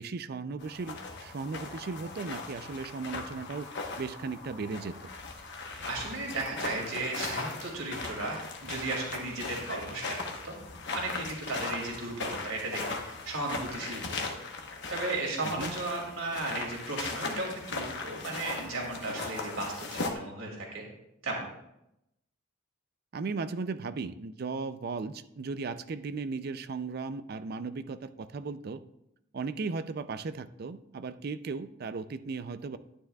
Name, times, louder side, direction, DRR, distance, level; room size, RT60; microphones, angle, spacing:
voice 1, 0.0-3.7 4.0-5.1 15.4-15.7 23.1-28.8 29.3-32.8, right 4 dB, 50° right, 11 dB, 0.4 m, -36 dB
sound 1, 0.6-20.1, left 3 dB, 60° left, 1.1 m, -38 dB
voice 2, 5.8-10.2 10.4-10.5 10.9-14.3 14.9-20.8 21.2-21.5, right 2 dB, 80° right, -1 dB, 2.5 m, -35 dB
11.5 x 9.6 x 2.3 m, 0.83 s
head